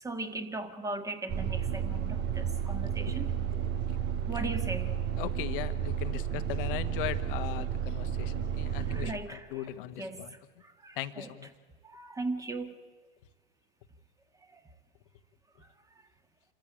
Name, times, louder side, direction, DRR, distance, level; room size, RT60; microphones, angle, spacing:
voice 1, 0.0-3.3 4.3-4.9 8.9-9.6 10.0-10.2 10.8-11.3 11.8-12.8 14.5-14.6, right 2 dB, 10° right, 1.7 m, -38 dB
sound 1, 1.3-9.1, right 9 dB, 35° right, 1.2 m, -32 dB
voice 2, 5.2-10.3 10.9-11.5, left 13 dB, 60° left, 1.4 m, -39 dB
26.5 x 14.5 x 8.7 m
hypercardioid pair, 115°, 31 cm